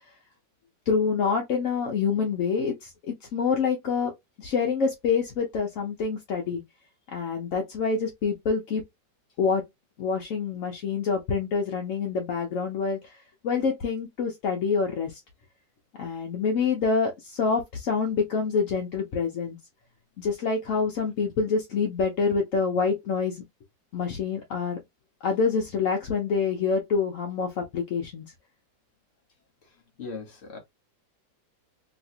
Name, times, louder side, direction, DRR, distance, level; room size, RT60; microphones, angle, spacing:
voice 1, 0.9-4.1 4.4-6.6 7.1-8.8 9.4-9.6 10.0-15.2 16.0-19.6 20.2-23.4 23.9-24.8 25.2-28.2, left 5 dB, 60° left, 0.8 m, -26 dB
voice 2, 30.0-30.6, left 4 dB, 40° left, 1.1 m, -38 dB
3.1 x 2.8 x 2.6 m
omnidirectional pair, 2.0 m